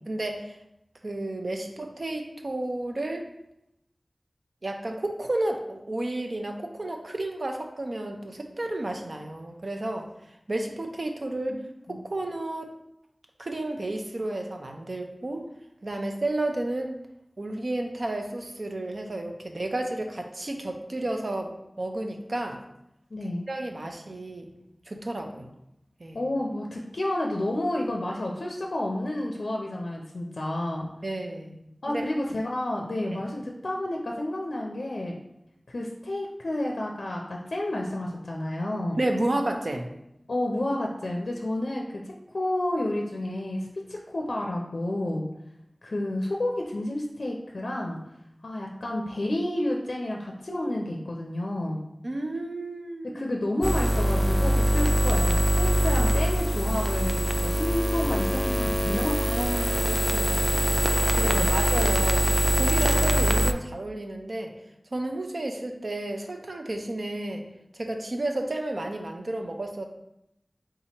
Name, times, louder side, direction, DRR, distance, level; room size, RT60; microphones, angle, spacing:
voice 1, 0.1-0.6 1.0-3.3 4.6-10.1 10.5-11.6 11.9-12.7 13.4-15.4 15.8-16.9 17.4-22.6 23.5-24.5 24.9-25.5 26.0-26.2 31.0-32.1 33.1-33.2 39.0-39.9 52.0-53.2 59.2-60.8 61.2-62.2 62.5-64.5 64.9-67.4 67.7-69.9, right 1 dB, 65° right, 3 dB, 0.6 m, -32 dB
voice 2, 11.5-12.0 23.1-23.4 26.1-30.9 31.8-35.1 35.7-39.0 40.3-41.8 42.3-45.3 45.8-48.0 48.4-51.8 53.1-59.2 61.2-61.6, left 1 dB, 85° left, 0 dB, 0.4 m, -30 dB
sound 1, 53.6-63.5, equal, ahead, 0.3 m, -23 dB
3.7 x 2.9 x 4.3 m, 0.83 s
wide cardioid pair, 55°, 0 cm